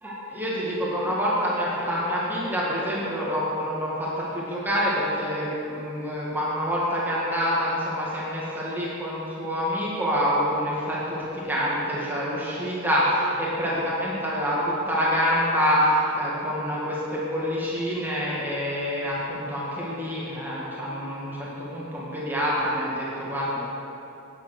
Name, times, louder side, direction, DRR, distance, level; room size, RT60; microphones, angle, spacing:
voice 1, 0.0-23.6, equal, 10° right, -7 dB, 1.8 m, -26 dB
10.0 x 9.0 x 6.5 m, 2.9 s
head